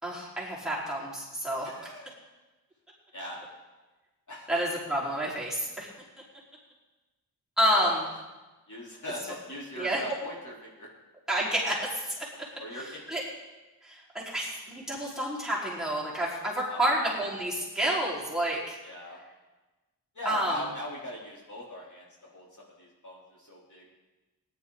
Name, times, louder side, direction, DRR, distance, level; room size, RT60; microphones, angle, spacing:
voice 1, 0.0-1.7 4.5-5.9 7.6-8.0 9.7-10.0 11.3-12.1 12.7-13.2 13.8-18.8 20.2-20.6, right 1 dB, ahead, -6 dB, 4.7 m, -29 dB
voice 2, 1.6-2.1 3.1-3.4 4.3-4.5 7.8-7.9 8.7-10.9 12.6-13.2 16.7-17.0 18.8-19.2 20.1-22.0 22.3-22.4 22.8-23.8, left 1 dB, 50° left, -5 dB, 4.0 m, -40 dB
19.0 x 11.0 x 4.1 m, 1.1 s
wide cardioid pair, 90°, 39 cm